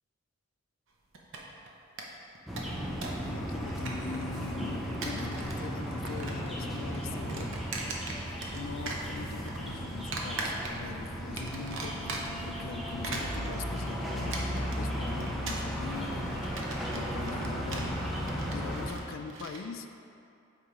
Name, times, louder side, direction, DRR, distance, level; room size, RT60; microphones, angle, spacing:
sound 1, 1.1-1.7 2.0-2.1 2.4-3.3 3.5-4.4 4.8-5.6 5.9-6.5 6.8-8.6 8.9-9.6 10.1-11.0 11.4-12.5 12.9-19.6, right 3 dB, 65° right, 0.7 m, -39 dB
sound 2, 2.5-18.9, equal, ahead, 0.5 m, -35 dB
voice 1, 3.2-7.5 8.5-12.2 12.4-16.4 16.9-18.0 18.5-19.9, left 5 dB, 65° left, 7 dB, 0.3 m, -42 dB
sound 3, 8.8-9.4 11.4-16.1 16.3-17.1, left 1 dB, 25° left, 1.1 m, -49 dB
8.0 x 2.9 x 4.9 m, 2.6 s
head